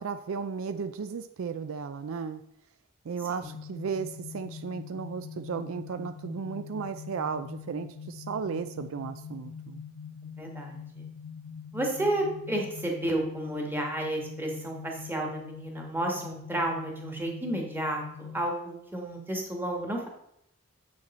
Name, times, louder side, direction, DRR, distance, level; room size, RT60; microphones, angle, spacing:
voice 1, 0.0-2.4 3.0-9.8, right 5 dB, 65° right, 10 dB, 0.4 m, -35 dB
sound 1, 3.4-18.4, left 6 dB, 55° left, 0.6 m, -43 dB
voice 2, 10.4-10.8 11.7-20.1, right 1 dB, 10° right, 0 dB, 1.5 m, -31 dB
7.5 x 6.4 x 4.3 m, 0.77 s
head